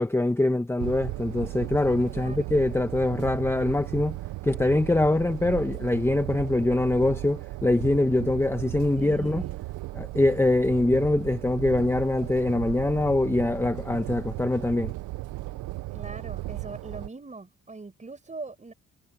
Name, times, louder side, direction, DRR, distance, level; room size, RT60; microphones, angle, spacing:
voice 1, 0.0-4.2 4.4-9.4 9.9-14.9, left 2 dB, 10° left, 1.2 m, -24 dB
sound 1, 0.8-17.1, right 18 dB, 85° right, 0.7 m, -36 dB
voice 2, 2.1-2.5 9.0-9.6 15.9-18.7, right 3 dB, 25° right, 5.2 m, -41 dB
cardioid pair, 90°, 30 cm